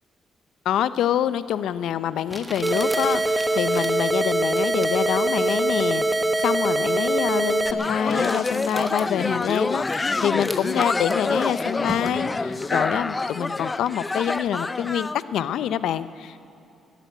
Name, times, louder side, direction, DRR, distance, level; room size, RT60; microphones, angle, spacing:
voice 1, 0.7-16.4, left 10 dB, 80° left, 14 dB, 0.5 m, -26 dB
Crumpling crinkling, 1.4-1.5 2.3-12.4, equal, ahead, 1.7 m, -40 dB
sound 1, 2.6-7.7, right 2 dB, 20° right, 0.8 m, -23 dB
sound 2, 7.7-15.2, left 3 dB, 25° left, 0.4 m, -27 dB
13.5 x 11.5 x 9.1 m, 2.6 s
cardioid pair, 90°, 0 cm